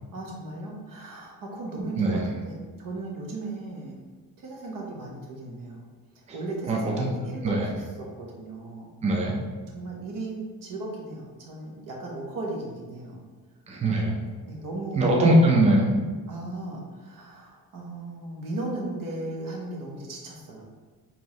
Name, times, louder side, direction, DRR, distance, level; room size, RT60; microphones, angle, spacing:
voice 1, 0.1-4.0 4.4-5.8 6.3-8.9 9.7-13.2 14.4-15.2 16.3-20.6, right 2 dB, 60° right, -2 dB, 1.1 m, -36 dB
voice 2, 6.7-7.1 7.4-7.6 9.0-9.3 13.7-14.2 14.9-15.9, right 1 dB, 20° right, -1 dB, 0.5 m, -21 dB
4.5 x 2.8 x 3.1 m, 1.4 s
cardioid pair, 130°, 38 cm